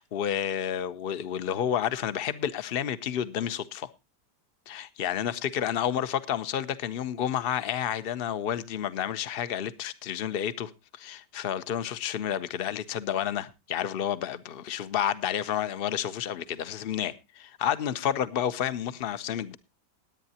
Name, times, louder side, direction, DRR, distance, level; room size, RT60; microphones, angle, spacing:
voice 1, 0.0-3.9 4.7-19.6, left 9 dB, 55° left, 0.6 m, -30 dB
20.0 x 9.0 x 2.8 m
omnidirectional pair, 1.9 m